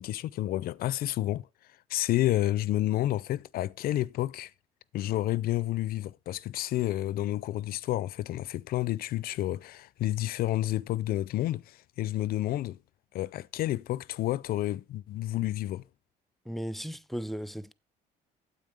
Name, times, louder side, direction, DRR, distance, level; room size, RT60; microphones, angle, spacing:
voice 1, 0.0-1.5 1.9-4.5 4.9-12.8 13.1-15.8, left 14 dB, 65° left, 0.4 m, -30 dB
voice 2, 16.5-17.7, equal, ahead, 0.5 m, -36 dB
9.2 x 8.0 x 3.4 m
cardioid pair, 110°, 17 cm